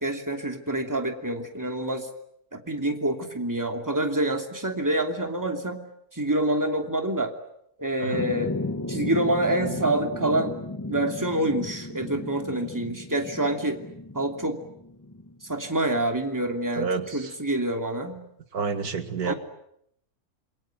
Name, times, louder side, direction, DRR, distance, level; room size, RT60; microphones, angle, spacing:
voice 1, 0.0-2.1 2.5-5.9 6.1-7.3 7.8-8.5 8.9-10.5 10.9-13.8 14.1-14.6 15.5-16.9 17.1-18.2 19.2-19.3, right 1 dB, 10° right, 4 dB, 2.9 m, -27 dB
sound 1, 8.1-15.9, left 2 dB, 15° left, 1.2 m, -35 dB
voice 2, 16.7-17.3 18.5-19.3, right 5 dB, 75° right, 9 dB, 2.2 m, -29 dB
28.0 x 23.0 x 8.9 m, 0.75 s
omnidirectional pair, 1.6 m